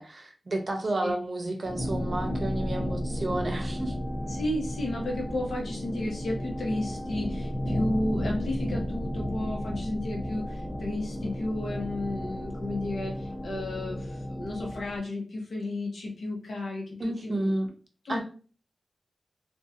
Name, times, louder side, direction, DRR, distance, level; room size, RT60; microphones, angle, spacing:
voice 1, 0.0-3.9 17.0-17.7 18.1-18.2, right 1 dB, 45° right, 3 dB, 0.6 m, -31 dB
sound 1, 1.7-15.0, equal, 30° left, 0.5 m, -33 dB
voice 2, 4.3-17.5 18.0-18.2, left 1 dB, 85° left, -1 dB, 0.8 m, -33 dB
2.6 x 2.3 x 2.4 m, 0.38 s
wide cardioid pair, 70°, 0 cm